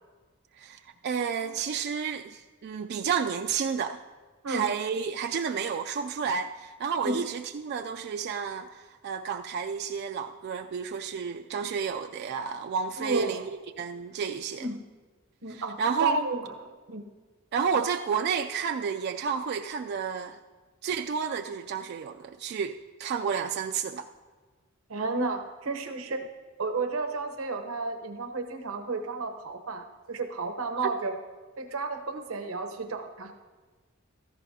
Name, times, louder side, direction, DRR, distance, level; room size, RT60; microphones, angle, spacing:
voice 1, 0.6-4.0 4.5-14.7 15.8-16.3 17.5-20.4 20.8-22.7 23.0-24.1 30.8-30.9, right 6 dB, 50° right, 6 dB, 0.3 m, -31 dB
voice 2, 13.0-13.5 14.6-14.8 15.4-16.5 16.9-17.0 24.9-26.2 26.6-31.1 31.6-33.3, right 3 dB, 90° right, 6 dB, 0.9 m, -32 dB
16.0 x 14.0 x 2.8 m, 1.4 s
head